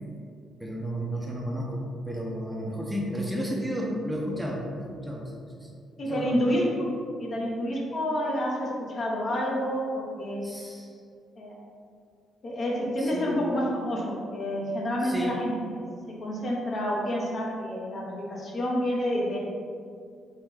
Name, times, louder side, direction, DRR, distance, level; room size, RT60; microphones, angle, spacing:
voice 1, 0.6-5.7 6.0-6.4 10.4-10.9 13.0-13.5 15.0-15.5, equal, 5° right, -2 dB, 0.6 m, -33 dB
voice 2, 6.0-6.9 7.2-10.4 11.4-11.6 12.4-15.8 16.2-19.5, equal, 50° left, -3 dB, 0.8 m, -29 dB
3.5 x 3.4 x 3.2 m, 2.3 s
cardioid pair, 90°, 0 cm